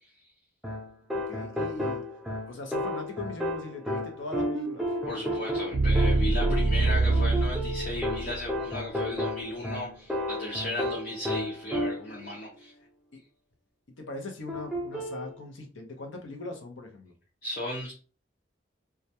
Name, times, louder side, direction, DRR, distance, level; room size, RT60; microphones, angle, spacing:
sound 1, 0.6-12.3 14.5-15.3, left 1 dB, ahead, 0.4 m, -33 dB
voice 1, 1.1-2.0 2.5-4.9 6.3-6.7 14.0-17.1, left 2 dB, 90° left, 3 dB, 0.7 m, -40 dB
sound 2, 4.5-8.6, right 2 dB, 85° right, 0.4 m, -26 dB
voice 2, 5.1-12.7 17.4-17.9, left 1 dB, 45° left, -2 dB, 0.5 m, -35 dB
2.3 x 2.1 x 2.8 m, 0.37 s
head